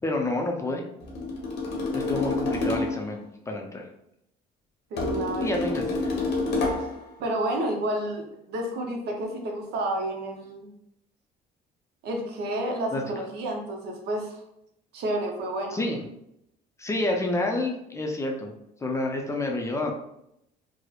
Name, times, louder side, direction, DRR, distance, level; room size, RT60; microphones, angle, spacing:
voice 1, 0.0-0.8 1.9-3.8 5.4-6.0 12.9-13.0 15.7-16.0 16.8-18.5 18.8-19.9, left 2 dB, 15° left, 1 dB, 0.4 m, -28 dB
sound 1, 1.0-3.1 5.0-7.0, left 2 dB, 80° left, 0.8 m, -28 dB
voice 2, 4.9-5.8 6.5-6.7 7.2-10.7 12.0-14.4 14.9-15.8, right 1 dB, 75° right, 2 dB, 0.6 m, -30 dB
2.8 x 2.0 x 2.2 m, 0.79 s
cardioid pair, 110°, 17 cm